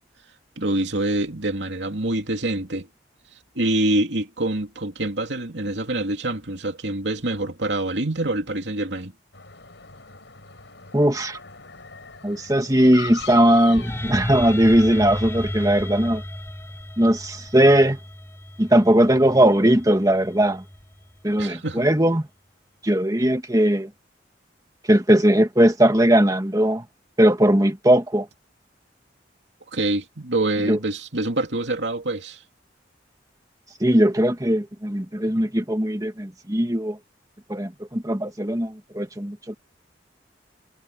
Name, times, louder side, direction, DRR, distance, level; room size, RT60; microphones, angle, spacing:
voice 1, 0.6-2.9 3.5-9.1 21.4-21.9 29.7-32.4, right 1 dB, 70° right, 2.8 m, -25 dB
sound 1, 9.3-15.7, left 5 dB, 75° left, 5.1 m, -42 dB
voice 2, 10.9-11.4 12.2-16.2 17.0-18.0 18.6-20.6 21.2-22.2 22.8-23.9 24.9-26.8 27.2-28.3 30.7-30.8 33.8-37.0 37.5-39.5, right 1 dB, 20° right, 1.8 m, -19 dB
sound 2, 13.1-21.2, equal, 15° left, 4.4 m, -34 dB
head